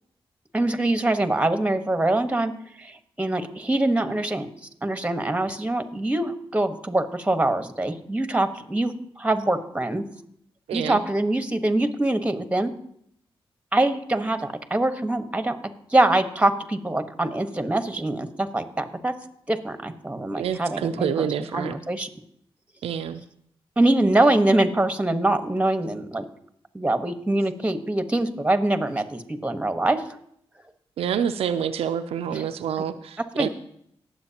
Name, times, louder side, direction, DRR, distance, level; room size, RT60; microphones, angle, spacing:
voice 1, 0.5-2.5 2.8-4.5 4.8-10.0 10.7-12.7 13.7-15.6 15.9-19.1 19.5-22.1 23.8-26.2 26.7-30.0 32.3-32.4 33.2-33.5, right 2 dB, 15° right, 8 dB, 1.3 m, -24 dB
voice 2, 10.7-11.0 20.3-21.7 22.8-23.2 31.0-33.5, right 8 dB, 90° right, 8 dB, 0.5 m, -27 dB
19.0 x 7.7 x 2.9 m, 0.70 s
cardioid pair, 55°, 10 cm